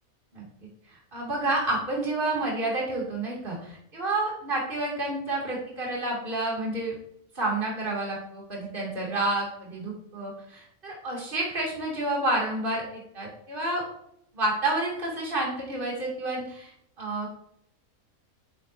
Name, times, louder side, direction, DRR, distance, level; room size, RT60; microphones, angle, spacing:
voice 1, 1.1-6.9 7.3-13.8 14.3-16.7 17.0-17.3, right 2 dB, 35° right, -3 dB, 2.8 m, -29 dB
10.5 x 7.7 x 2.7 m, 0.74 s
omnidirectional pair, 1.5 m